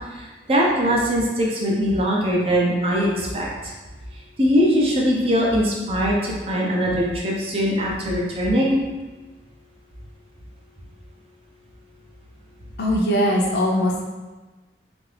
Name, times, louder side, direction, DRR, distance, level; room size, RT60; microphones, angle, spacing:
voice 1, 0.5-3.5 4.4-8.8, equal, 30° right, -3 dB, 0.5 m, -21 dB
voice 2, 12.8-14.0, equal, 65° left, -2 dB, 0.6 m, -20 dB
2.8 x 2.5 x 3.2 m, 1.2 s
head